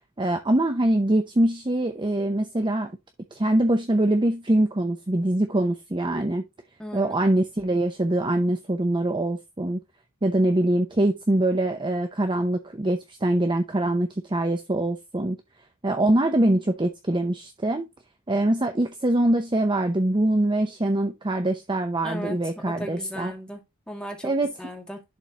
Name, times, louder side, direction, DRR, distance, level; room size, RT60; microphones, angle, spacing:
voice 1, 0.2-2.9 3.3-6.5 6.9-9.8 10.2-15.4 15.8-17.8 18.3-23.3 24.2-24.5, right 1 dB, 20° right, 0.7 m, -23 dB
voice 2, 6.8-7.1 22.0-22.4 22.7-24.3 24.6-25.0, equal, 5° left, 2.1 m, -36 dB
11.0 x 4.0 x 3.0 m
head